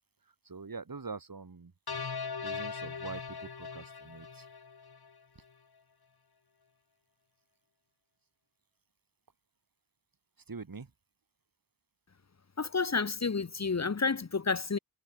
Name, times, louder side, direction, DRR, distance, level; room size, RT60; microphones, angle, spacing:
voice 1, 0.4-1.7 2.4-4.4 10.5-10.9, right 4 dB, 60° right, 8.0 m, -44 dB
sound 1, 1.9-5.2, left 5 dB, 70° left, 4.2 m, -40 dB
voice 2, 12.6-14.8, left 4 dB, 40° left, 1.2 m, -30 dB
wide cardioid pair, 70°, 39 cm